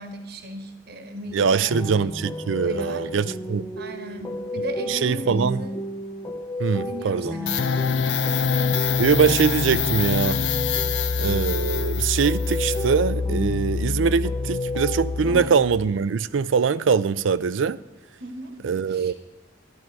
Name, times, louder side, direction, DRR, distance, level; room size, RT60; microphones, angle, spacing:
voice 1, 0.0-2.1 2.6-3.1 3.8-5.8 6.7-7.6 8.3-8.5 15.2-15.5 18.2-18.6 18.9-19.1, right 1 dB, 55° right, 1.3 m, -36 dB
voice 2, 1.3-3.7 4.9-5.6 6.6-7.3 9.0-10.4 11.2-17.8 18.6-19.1, right 6 dB, 80° right, 0.4 m, -22 dB
sound 1, 1.7-15.5, left 1 dB, 15° left, 0.6 m, -33 dB
sound 2, 7.5-15.9, left 5 dB, 65° left, 0.7 m, -25 dB
12.0 x 12.0 x 4.6 m
head